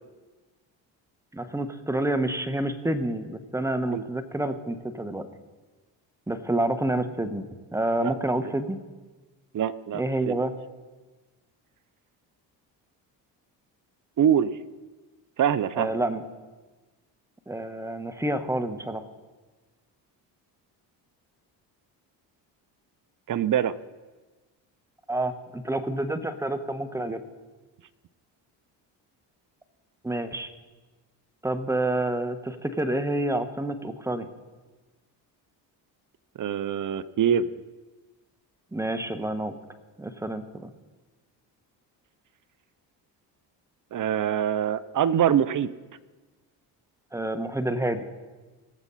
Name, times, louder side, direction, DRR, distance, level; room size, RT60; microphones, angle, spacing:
voice 1, 1.3-5.3 6.3-8.8 9.9-10.5 15.7-16.2 17.5-19.0 25.1-27.2 30.0-30.5 31.4-34.3 38.7-39.6 40.0-40.7 47.1-48.1, right 1 dB, 5° right, 9 dB, 1.3 m, -28 dB
voice 2, 9.5-10.4 14.2-14.5 15.4-15.9 23.3-23.7 36.4-37.5 43.9-45.7, right 9 dB, 40° right, 17 dB, 0.6 m, -24 dB
21.0 x 7.3 x 4.2 m, 1.3 s
supercardioid pair, 60°, 48 cm